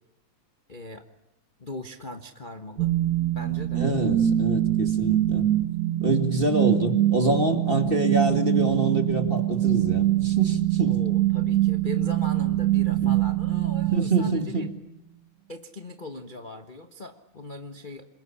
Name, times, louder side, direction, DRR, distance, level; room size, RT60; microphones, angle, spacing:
voice 1, 0.7-1.1 1.6-2.9 3.3-3.8 7.7-7.9 10.8-14.7 15.5-18.1, left 2 dB, 65° left, 6 dB, 0.4 m, -40 dB
sound 1, 2.8-14.8, right 13 dB, 50° right, 1.2 m, -24 dB
voice 2, 3.7-5.5 6.0-11.0 13.0-13.1 13.9-14.7, right 2 dB, 20° right, 7 dB, 1.8 m, -26 dB
27.0 x 22.0 x 10.0 m, 0.82 s
omnidirectional pair, 3.3 m